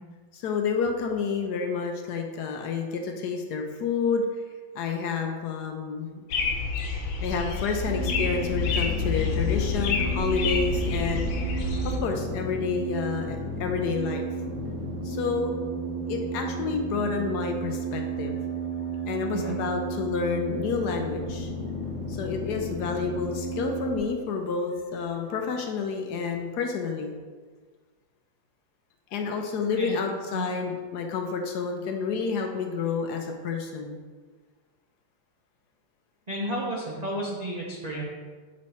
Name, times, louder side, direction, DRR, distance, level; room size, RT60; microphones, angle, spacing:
voice 1, 0.3-4.3 4.7-6.2 7.2-11.3 11.8-14.2 15.0-15.6 16.1-18.4 19.1-21.5 22.1-27.1 29.1-34.0, left 5 dB, 70° left, 3 dB, 1.0 m, -29 dB
sound 1, 6.3-12.0, left 3 dB, 85° left, 1.5 m, -28 dB
sound 2, 7.8-24.0, right 2 dB, 20° right, 1.0 m, -33 dB
voice 2, 36.3-38.0, right 1 dB, 80° right, -5 dB, 0.3 m, -32 dB
7.2 x 3.2 x 4.1 m, 1.5 s
omnidirectional pair, 2.0 m